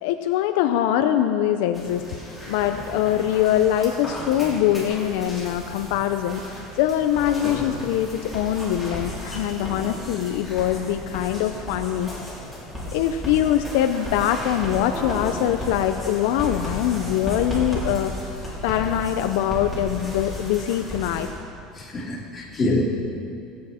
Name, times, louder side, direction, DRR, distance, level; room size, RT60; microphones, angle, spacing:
voice 1, 0.0-2.0 2.5-6.4 6.7-12.1 12.9-18.1 18.6-21.3, left 11 dB, 80° left, 7 dB, 0.5 m, -23 dB
sound 1, 1.7-21.3, equal, 5° right, 3.5 m, -34 dB
voice 2, 21.7-22.8, left 2 dB, 20° left, -5 dB, 2.6 m, -25 dB
16.5 x 8.4 x 4.3 m, 2.5 s
cardioid pair, 145°, 0 cm